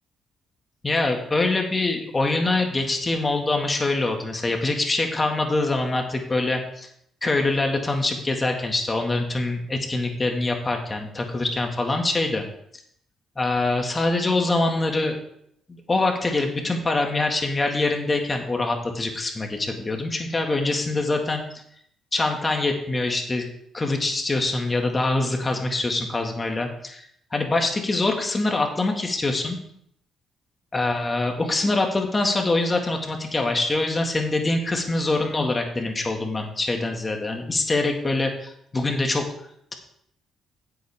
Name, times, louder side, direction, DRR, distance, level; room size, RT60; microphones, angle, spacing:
voice 1, 0.8-6.9 7.2-12.4 13.4-15.2 15.7-21.4 22.1-23.4 23.7-27.1 27.3-29.6 30.7-39.3, left 2 dB, 25° left, 3 dB, 2.0 m, -24 dB
15.5 x 8.0 x 3.6 m, 0.71 s
cardioid pair, 90°, 0 cm